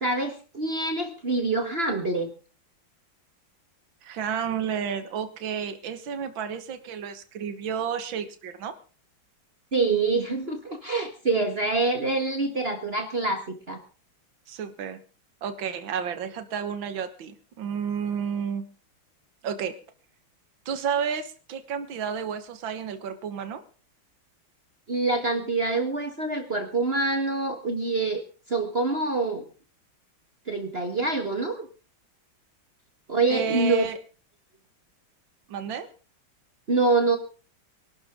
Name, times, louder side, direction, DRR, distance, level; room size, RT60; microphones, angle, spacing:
voice 1, 0.0-2.3 9.7-13.8 24.9-29.4 30.5-31.7 33.1-33.9 36.7-37.2, right 3 dB, 30° right, 5 dB, 1.8 m, -26 dB
voice 2, 4.0-8.8 14.5-15.0 15.4-18.7 19.4-19.8 20.7-23.6 33.3-34.0 35.5-35.9, right 7 dB, 70° right, 9 dB, 2.1 m, -31 dB
23.5 x 12.5 x 3.7 m, 0.36 s
omnidirectional pair, 2.2 m